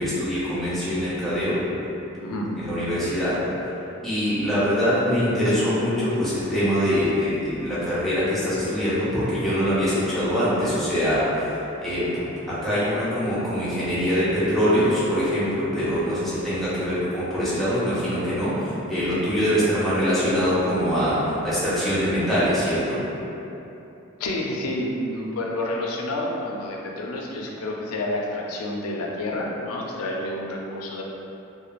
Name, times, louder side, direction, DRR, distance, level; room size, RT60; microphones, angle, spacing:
voice 1, 0.0-1.6 2.6-3.5 4.0-23.0, equal, ahead, -12 dB, 0.6 m, -23 dB
voice 2, 24.2-31.0, left 1 dB, 85° left, -1 dB, 0.4 m, -29 dB
2.4 x 2.1 x 2.9 m, 2.9 s
head